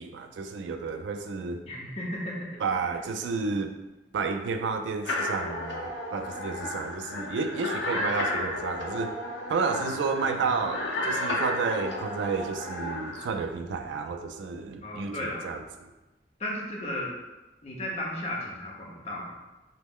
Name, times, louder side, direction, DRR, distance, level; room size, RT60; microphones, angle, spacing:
voice 1, 0.0-1.6 2.6-3.7 4.1-9.2 9.5-15.9, right 4 dB, 90° right, 6 dB, 0.3 m, -31 dB
voice 2, 1.7-2.6 3.5-3.6 9.7-10.0 10.2-10.5 14.8-15.5 16.4-17.2 17.6-19.4, left 1 dB, 35° left, -3 dB, 0.7 m, -35 dB
sound 1, 5.0-13.3, left 1 dB, 80° left, 0.5 m, -33 dB
2.9 x 2.1 x 3.5 m, 1.0 s
head